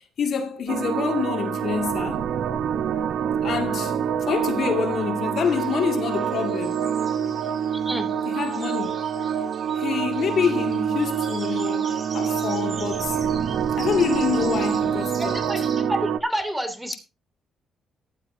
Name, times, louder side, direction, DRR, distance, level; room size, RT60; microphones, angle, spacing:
voice 1, 0.0-2.2 3.4-4.0 4.3-6.9 8.3-9.3 9.7-13.2 13.8-15.4, left 7 dB, 60° left, 2.3 m, -27 dB
sound 1, 0.7-16.2, right 8 dB, 70° right, 0.9 m, -26 dB
sound 2, 5.4-15.8, right 4 dB, 40° right, 6.1 m, -43 dB
voice 2, 7.7-8.1 15.2-17.0, right 1 dB, 5° right, 2.7 m, -29 dB
15.0 x 11.5 x 2.7 m
cardioid pair, 90°, 0 cm